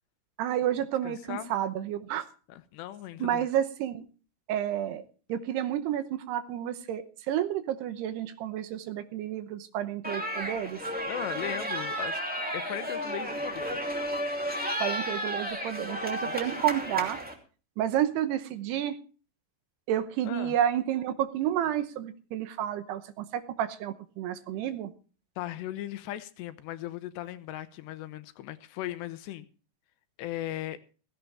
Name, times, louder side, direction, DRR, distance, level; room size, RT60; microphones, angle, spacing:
voice 1, 0.4-2.3 3.2-4.0 4.5-5.0 5.3-10.8 14.8-17.2 17.8-19.0 19.9-24.9, right 11 dB, 75° right, 2.9 m, -30 dB
voice 2, 1.0-1.5 2.5-3.5 11.0-12.2 12.5-13.8 16.3-16.4 20.2-20.6 25.4-29.5 30.2-30.8, left 13 dB, 80° left, 2.9 m, -37 dB
sound 1, 10.0-17.3, equal, 5° right, 1.3 m, -33 dB
16.5 x 16.0 x 3.4 m
omnidirectional pair, 5.1 m